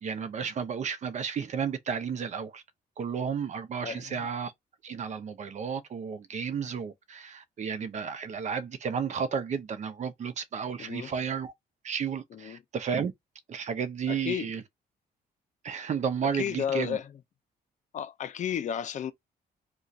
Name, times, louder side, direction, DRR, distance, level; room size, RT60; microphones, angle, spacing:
voice 1, 0.0-2.6 3.0-4.5 4.8-11.5 11.8-13.1 13.5-14.6 15.6-17.0, right 6 dB, 45° right, 0.6 m, -32 dB
voice 2, 3.8-4.3 10.8-11.1 12.3-12.6 14.1-14.5 16.3-17.1 17.9-19.1, left 9 dB, 45° left, 0.5 m, -33 dB
2.4 x 2.3 x 4.0 m
cardioid pair, 110°, 17 cm